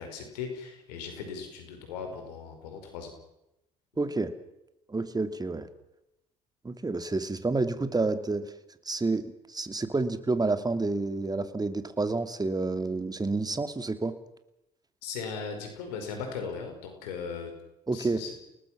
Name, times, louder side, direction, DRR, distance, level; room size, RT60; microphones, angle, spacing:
voice 1, 0.0-3.1 15.0-17.5 17.9-18.3, left 5 dB, 85° left, 5 dB, 5.3 m, -38 dB
voice 2, 4.0-4.3 4.9-5.7 6.6-8.5 8.9-14.1 17.9-18.2, right 3 dB, 20° right, 10 dB, 2.5 m, -29 dB
29.5 x 19.5 x 6.2 m, 0.87 s
hypercardioid pair, 60°, 20 cm